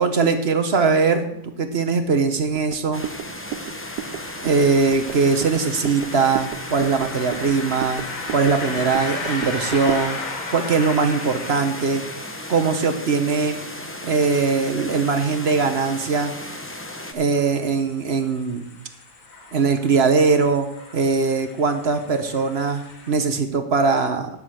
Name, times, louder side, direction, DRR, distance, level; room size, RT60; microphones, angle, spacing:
voice 1, 0.0-3.1 4.4-8.0 8.3-10.2 10.5-12.0 12.5-13.6 14.0-16.3 17.1-18.7 19.5-20.7 20.9-24.3, right 4 dB, 45° right, 7 dB, 1.2 m, -21 dB
sound 1, 2.5-10.1, right 10 dB, 85° right, 1.3 m, -34 dB
sound 2, 2.9-17.1, left 1 dB, 10° left, 0.6 m, -36 dB
sound 3, 3.8-23.1, left 3 dB, 60° left, 2.0 m, -37 dB
11.0 x 6.5 x 7.6 m, 0.76 s
omnidirectional pair, 1.6 m